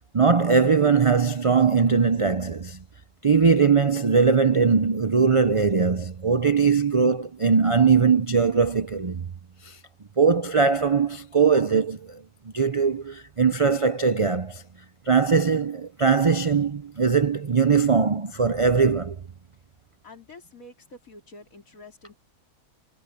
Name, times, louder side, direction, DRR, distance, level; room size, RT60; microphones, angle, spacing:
voice 1, 0.1-2.8 3.2-9.2 9.6-9.8 10.2-14.6 15.1-19.2, right 5 dB, 55° right, 0.3 m, -21 dB
voice 2, 20.0-22.2, left 2 dB, 60° left, 4.2 m, -47 dB
omnidirectional pair, 1.6 m